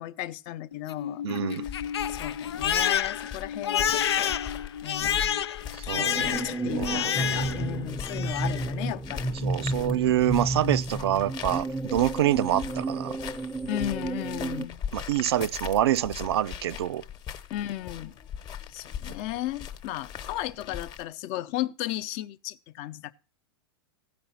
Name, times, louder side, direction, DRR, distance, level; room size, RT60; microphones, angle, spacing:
voice 1, 0.0-1.8 2.1-4.3 4.8-5.4 5.8-9.4 13.7-14.8 17.5-18.2 18.7-23.1, left 14 dB, 50° left, 0.7 m, -35 dB
Crying sobbing, 0.7-7.7 8.0-8.6, left 9 dB, 90° left, 0.5 m, -29 dB
voice 2, 1.2-1.6 5.9-7.8 9.4-13.2 14.9-17.0, right 12 dB, 80° right, 0.4 m, -27 dB
sound 1, 1.6-21.0, left 9 dB, 35° left, 1.0 m, -41 dB
sound 2, 6.0-14.7, right 2 dB, ahead, 0.5 m, -32 dB
15.5 x 5.2 x 5.7 m
hypercardioid pair, 115°, 13 cm